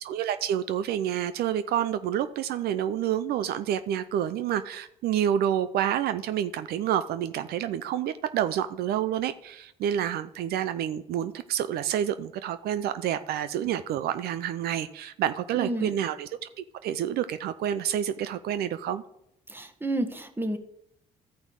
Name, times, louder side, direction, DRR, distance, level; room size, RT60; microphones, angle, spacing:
voice 1, 0.0-16.3 16.6-19.0, right 10 dB, 75° right, 12 dB, 0.5 m, -28 dB
voice 2, 15.5-16.0 19.5-20.6, right 1 dB, 15° right, 7 dB, 1.4 m, -30 dB
13.5 x 5.2 x 6.3 m, 0.78 s
supercardioid pair, 65°, 16 cm